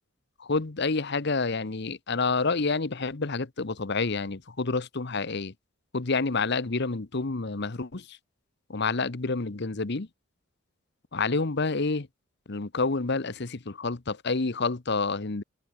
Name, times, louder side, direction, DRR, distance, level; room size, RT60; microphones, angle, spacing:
voice 1, 0.4-5.5 5.9-8.2 8.7-10.1 11.1-12.1 12.5-15.4, left 3 dB, 55° left, 1.0 m, -28 dB
head